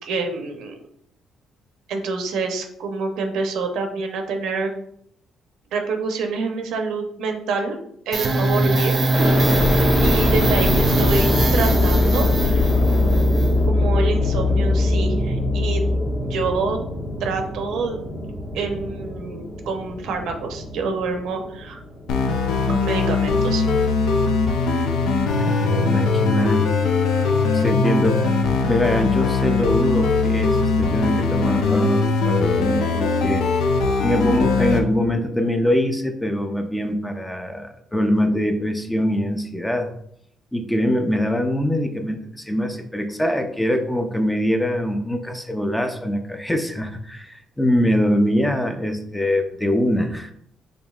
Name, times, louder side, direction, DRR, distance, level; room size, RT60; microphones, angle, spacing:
voice 1, 0.0-0.7 1.9-4.7 5.7-7.8 8.1-9.0 10.0-12.7 13.6-15.8 16.3-16.8 17.2-18.0 18.5-21.8 22.7-23.7, right 4 dB, 80° right, 4 dB, 0.7 m, -27 dB
sound 1, 8.1-16.6, left 1 dB, 40° right, 0.6 m, -20 dB
sound 2, 9.1-23.1 23.6-24.4, left 1 dB, 35° left, 1.0 m, -25 dB
sound 3, 22.1-34.8, left 4 dB, 85° left, 0.6 m, -20 dB
voice 2, 25.4-26.8 27.5-33.5 34.0-39.9 40.5-50.3, equal, 5° left, 6 dB, 0.4 m, -23 dB
5.2 x 3.0 x 2.3 m, 0.69 s
cardioid pair, 125°, 0 cm